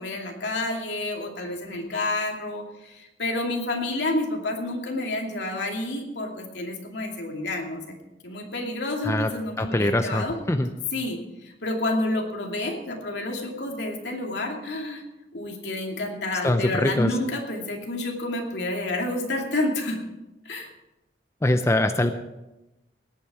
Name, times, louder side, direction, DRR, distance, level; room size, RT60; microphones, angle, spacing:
voice 1, 0.0-7.8 8.2-10.3 10.9-15.0 15.3-20.0 20.4-20.7, left 2 dB, 75° left, 1 dB, 2.6 m, -29 dB
voice 2, 9.6-10.7 16.4-17.1 21.4-22.1, left 1 dB, 15° left, 8 dB, 0.6 m, -23 dB
18.5 x 9.1 x 4.9 m, 0.97 s
head